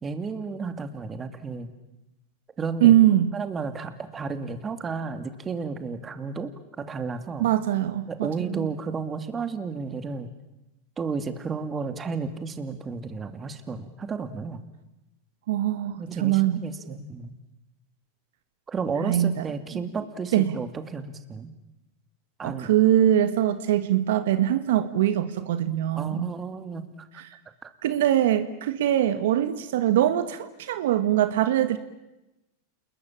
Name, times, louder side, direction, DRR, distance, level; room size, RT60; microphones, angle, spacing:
voice 1, 0.0-1.7 2.6-2.9 3.3-7.5 8.1-10.3 11.0-14.6 16.0-17.3 18.7-21.5 22.4-22.7 26.0-26.9 27.6-27.7, right 5 dB, 20° right, 9 dB, 2.5 m, -32 dB
voice 2, 2.8-3.3 7.4-8.7 15.5-16.6 19.0-19.3 20.3-20.5 22.4-26.3 27.8-31.8, right 12 dB, 75° right, 11 dB, 1.7 m, -22 dB
29.0 x 21.0 x 8.8 m, 0.98 s
hypercardioid pair, 115°, 0 cm